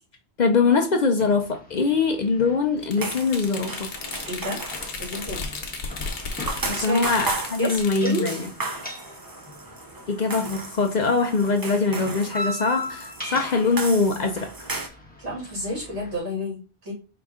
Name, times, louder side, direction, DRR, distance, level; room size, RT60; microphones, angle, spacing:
voice 1, 0.4-3.9 6.7-8.5 10.1-14.5, left 4 dB, 50° left, 4 dB, 0.6 m, -23 dB
sound 1, 1.2-16.2, left 1 dB, 10° left, 1.0 m, -40 dB
sound 2, 2.8-8.4, left 4 dB, 80° left, 1.1 m, -35 dB
sound 3, 3.0-14.9, right 3 dB, 30° right, 0.4 m, -35 dB
voice 2, 4.3-4.6 5.0-5.4 6.7-8.3 15.2-16.9, equal, 90° right, -5 dB, 2.6 m, -30 dB
4.8 x 2.6 x 3.5 m, 0.33 s
omnidirectional pair, 1.1 m